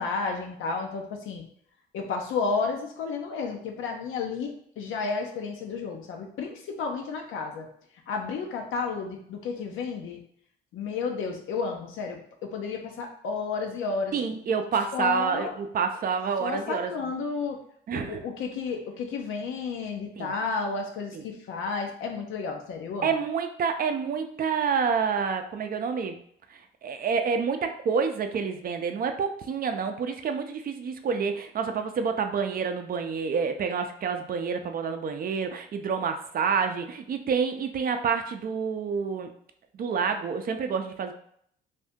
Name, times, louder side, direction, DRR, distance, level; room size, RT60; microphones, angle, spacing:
voice 1, 0.0-1.4 1.9-7.7 8.1-10.2 10.7-14.1 14.9-15.5 16.4-17.6 17.9-23.1, left 4 dB, 85° left, 3 dB, 0.7 m, -32 dB
voice 2, 14.1-16.9 17.9-18.2 20.2-20.3 21.1-21.2 23.0-26.2 26.8-39.3 39.7-41.1, right 6 dB, 45° right, 6 dB, 0.4 m, -28 dB
2.7 x 2.6 x 3.5 m, 0.65 s
cardioid pair, 90°, 20 cm